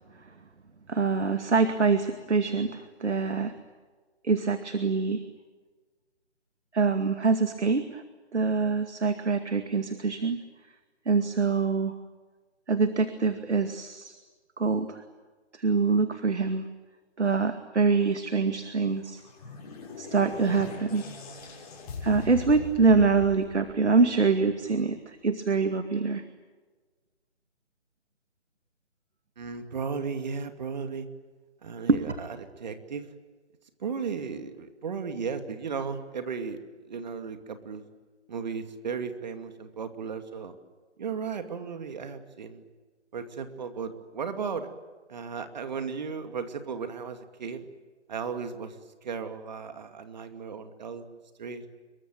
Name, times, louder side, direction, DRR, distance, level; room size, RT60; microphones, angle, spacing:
voice 1, 0.9-3.5 4.2-5.2 6.7-8.0 8.3-10.4 11.1-11.9 12.7-14.1 14.6-15.0 15.6-16.6 17.2-19.2 20.0-21.0 22.0-26.2 31.9-32.0, right 4 dB, 75° right, 8 dB, 2.3 m, -25 dB
sound 1, 19.0-24.4, left 4 dB, 35° left, 6.1 m, -40 dB
voice 2, 29.4-31.1 31.6-33.1 33.8-37.9 38.3-40.6 41.0-42.6 43.1-44.7 45.1-47.7 48.1-48.8 49.0-51.6, right 5 dB, 40° right, 8 dB, 2.5 m, -35 dB
26.5 x 23.0 x 9.2 m, 1.4 s
figure-of-eight pair, 155°, 35 cm